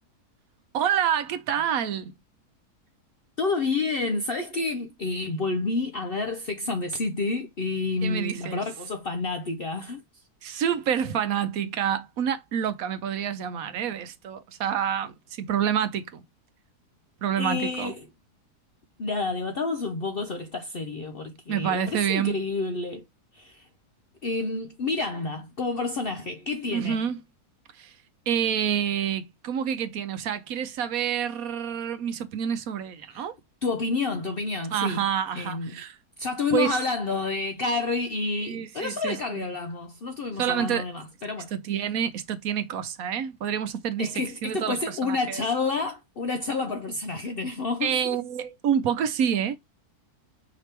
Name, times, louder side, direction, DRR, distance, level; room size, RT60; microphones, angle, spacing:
voice 1, 0.7-2.1 8.0-8.6 10.4-16.2 17.2-17.9 21.5-22.4 26.7-27.2 27.7-27.9 28.3-33.3 34.7-36.0 36.5-36.8 38.5-39.5 40.4-40.8 41.5-44.1 44.4-45.4 47.8-49.6, right 8 dB, 70° right, 1.1 m, -28 dB
voice 2, 3.4-10.0 17.4-18.1 19.0-23.0 23.3-23.6 24.2-27.0 33.1-33.3 33.6-35.1 35.3-35.8 36.2-41.5 44.0-48.2, left 3 dB, 60° left, 0.6 m, -29 dB
4.9 x 3.0 x 3.2 m
omnidirectional pair, 1.7 m